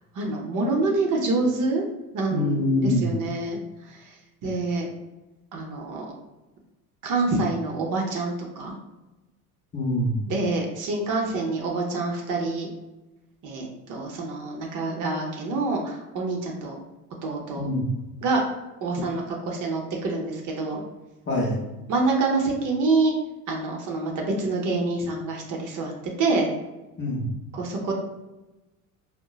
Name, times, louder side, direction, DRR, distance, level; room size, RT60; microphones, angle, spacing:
voice 1, 0.2-1.9 2.1-3.6 4.4-4.9 5.5-6.1 7.0-8.7 10.3-12.7 13.4-16.8 17.2-17.7 18.2-18.4 18.8-20.8 21.9-23.1 23.5-25.9 26.2-26.5 27.5-27.9, right 3 dB, 45° right, 0 dB, 0.7 m, -26 dB
voice 2, 2.3-3.1 9.7-10.2 17.6-17.9 21.3-21.6 27.0-27.3, left 1 dB, 25° left, -1 dB, 0.7 m, -24 dB
3.6 x 2.1 x 2.3 m, 1.0 s
hypercardioid pair, 75°, 45 cm